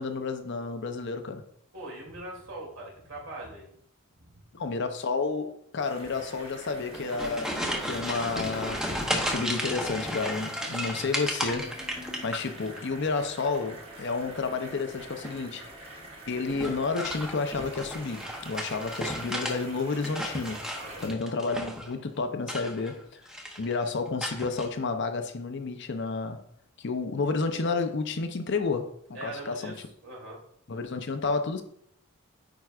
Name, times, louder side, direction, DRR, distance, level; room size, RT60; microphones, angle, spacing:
voice 1, 0.0-1.5 4.5-8.9 9.2-11.7 12.2-16.0 16.3-20.7 21.0-23.2 23.6-26.4 26.8-29.7 30.7-31.6, left 4 dB, 55° left, 0.6 m, -31 dB
voice 2, 1.7-3.7 4.2-4.4 10.9-11.1 20.8-21.0 29.1-30.4, right 1 dB, 70° right, 2.6 m, -42 dB
sound 1, 5.8-21.1, right 2 dB, 25° right, 1.3 m, -46 dB
sound 2, 6.8-12.8 13.1-13.7 15.1-15.5 16.5-19.6 19.9-21.9 22.4-23.0 23.3-23.7 24.2-24.7, equal, 5° right, 0.7 m, -34 dB
8.9 x 4.6 x 2.4 m
head